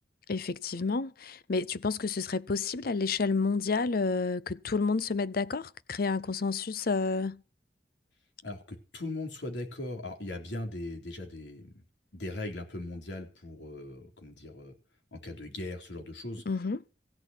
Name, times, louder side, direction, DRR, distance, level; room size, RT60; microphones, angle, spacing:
voice 1, 0.3-7.4 16.5-16.8, left 4 dB, 55° left, 0.6 m, -30 dB
voice 2, 8.4-11.8 12.1-14.7 15.1-16.4, left 2 dB, 80° left, 3.8 m, -39 dB
15.5 x 6.2 x 9.2 m
head